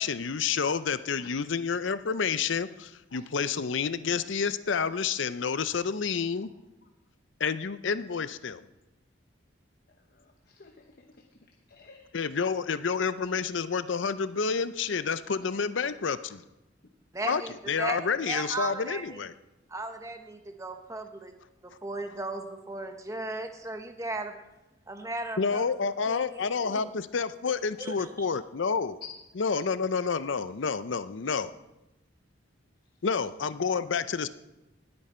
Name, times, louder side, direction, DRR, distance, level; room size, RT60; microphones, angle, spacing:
voice 1, 0.0-6.5 7.4-8.6 12.1-16.4 17.2-17.4 17.7-19.3 25.4-29.0 29.4-31.5 33.0-34.3, left 5 dB, 70° left, 14 dB, 0.6 m, -29 dB
voice 2, 10.1-11.0 11.7-12.1 29.4-29.6, left 3 dB, 50° left, 3 dB, 1.0 m, -53 dB
voice 3, 17.1-17.5 17.8-19.2 19.7-21.3 21.6-24.3 24.9-25.6 26.1-26.9 27.8-28.3, right 2 dB, 15° right, 6 dB, 1.0 m, -36 dB
19.5 x 8.8 x 4.4 m, 0.96 s
head